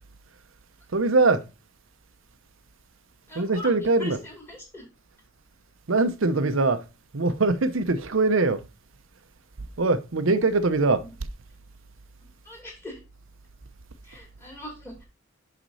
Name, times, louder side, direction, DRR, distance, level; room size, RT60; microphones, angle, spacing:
voice 1, 0.9-1.4 3.3-4.2 5.9-6.8 7.1-8.6 9.8-11.0, right 3 dB, 65° right, 0.7 m, -22 dB
voice 2, 3.3-3.7 4.0-4.8 11.0-11.1 12.4-13.0 14.0-15.1, left 1 dB, 10° left, 2.6 m, -40 dB
6.1 x 6.0 x 4.1 m
head